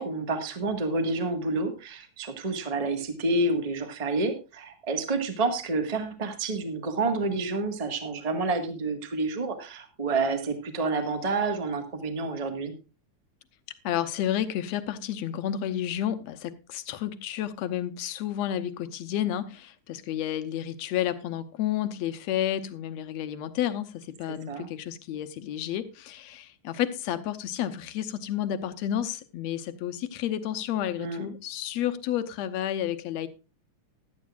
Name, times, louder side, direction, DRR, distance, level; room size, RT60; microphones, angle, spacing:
voice 1, 0.0-12.7 24.5-24.7 31.0-31.2, right 3 dB, 20° right, 1.0 m, -29 dB
voice 2, 13.8-33.3, left 11 dB, 70° left, 2.0 m, -31 dB
16.0 x 12.0 x 2.5 m
omnidirectional pair, 3.4 m